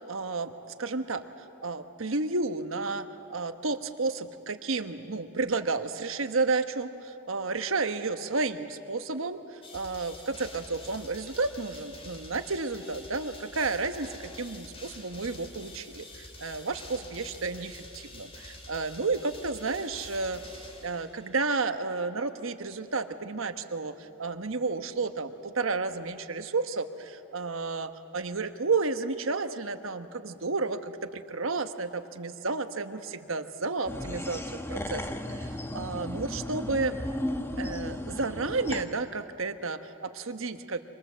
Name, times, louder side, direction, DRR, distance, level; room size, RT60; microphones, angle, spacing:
voice 1, 0.1-0.5 0.8-1.2 1.6-35.0 35.3-37.0 37.6-40.8, right 3 dB, 65° right, 9 dB, 1.2 m, -32 dB
sound 1, 9.6-21.5, left 2 dB, 25° left, 3.0 m, -47 dB
sound 2, 33.9-38.8, left 1 dB, 10° left, 1.2 m, -35 dB
28.5 x 25.5 x 7.5 m, 2.8 s
head